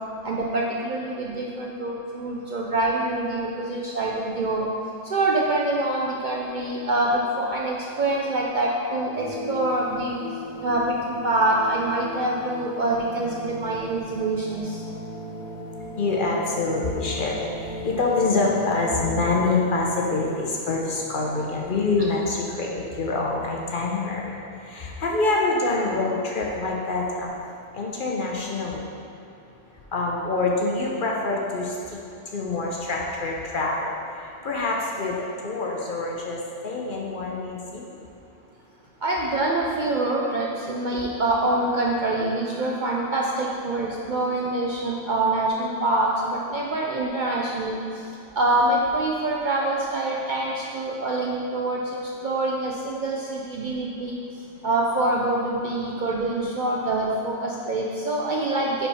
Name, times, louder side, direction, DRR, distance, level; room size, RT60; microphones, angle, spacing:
voice 1, 0.2-4.7 5.0-10.2 10.6-14.8 39.0-47.8 48.4-54.2 54.6-58.9, right 2 dB, 60° right, -3 dB, 0.5 m, -25 dB
sound 1, 9.1-19.6, equal, 35° right, 0.8 m, -37 dB
voice 2, 15.8-24.4 24.6-27.3 27.7-28.8 29.9-32.0 32.3-37.8, left 3 dB, 55° left, -2 dB, 0.7 m, -26 dB
5.2 x 4.4 x 4.8 m, 2.7 s
omnidirectional pair, 1.2 m